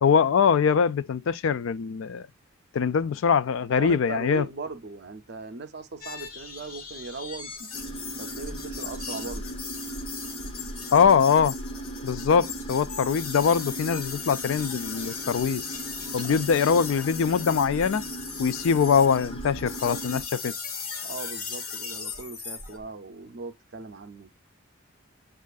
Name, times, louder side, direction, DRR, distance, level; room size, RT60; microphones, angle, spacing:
voice 1, 0.0-2.3 2.7-4.5 10.9-11.6 12.0-15.6 16.1-18.0 18.4-20.5, left 6 dB, 65° left, 0.3 m, -22 dB
voice 2, 3.7-7.5 8.2-9.4 16.2-16.3 16.7-16.8 21.0-24.3, right 3 dB, 50° right, 0.5 m, -38 dB
sound 1, 6.0-22.8, left 5 dB, 85° left, 1.2 m, -37 dB
sound 2, 7.7-20.2, right 2 dB, 25° left, 0.6 m, -39 dB
7.3 x 2.5 x 2.3 m
head